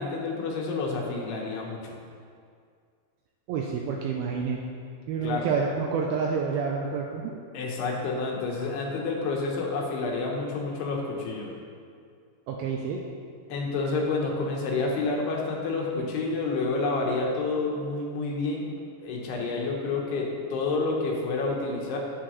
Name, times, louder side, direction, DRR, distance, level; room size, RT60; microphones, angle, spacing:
voice 1, 0.0-1.9 5.2-5.5 7.5-11.5 13.5-18.7 19.0-22.0, left 3 dB, 75° left, -1 dB, 3.0 m, -29 dB
voice 2, 3.5-4.6 5.1-7.4 12.5-13.0, right 5 dB, 90° right, 0 dB, 2.2 m, -28 dB
10.5 x 8.5 x 3.1 m, 2.2 s
omnidirectional pair, 4.9 m